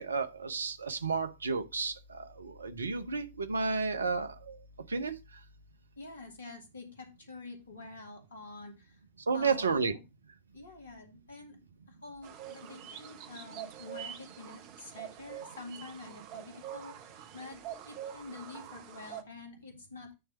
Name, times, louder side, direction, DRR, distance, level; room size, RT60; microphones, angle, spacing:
voice 1, 0.0-4.6 4.9-5.2 9.3-9.9, right 4 dB, 75° right, 0.8 m, -32 dB
voice 2, 6.0-9.0 9.3-10.0 10.5-11.6 11.9-20.2, left 3 dB, 70° left, 2.1 m, -47 dB
sound 1, 12.2-19.2, right 10 dB, 45° right, 0.9 m, -45 dB
9.0 x 3.3 x 5.7 m
figure-of-eight pair, 90°, 0 cm